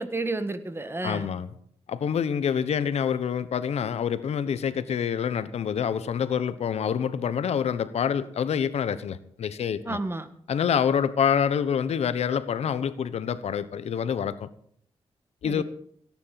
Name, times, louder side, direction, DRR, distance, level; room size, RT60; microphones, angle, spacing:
voice 1, 0.0-1.3 9.9-10.3 15.4-15.6, right 2 dB, 20° right, 11 dB, 1.6 m, -31 dB
voice 2, 1.0-1.5 1.9-10.0 10.5-14.5 15.4-15.6, left 8 dB, 90° left, 14 dB, 1.1 m, -27 dB
17.5 x 9.6 x 7.7 m, 0.64 s
cardioid pair, 90°, 11 cm